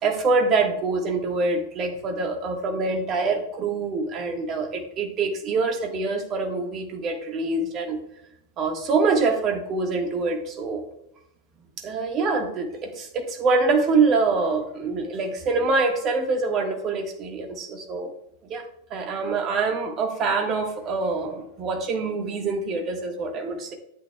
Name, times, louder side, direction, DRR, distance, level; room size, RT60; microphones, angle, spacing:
voice 1, 0.0-8.0 8.6-10.9 11.8-18.1 18.5-23.7, right 3 dB, 30° right, 4 dB, 1.5 m, -25 dB
13.0 x 8.7 x 2.3 m, 0.79 s
figure-of-eight pair, 90°, 0 cm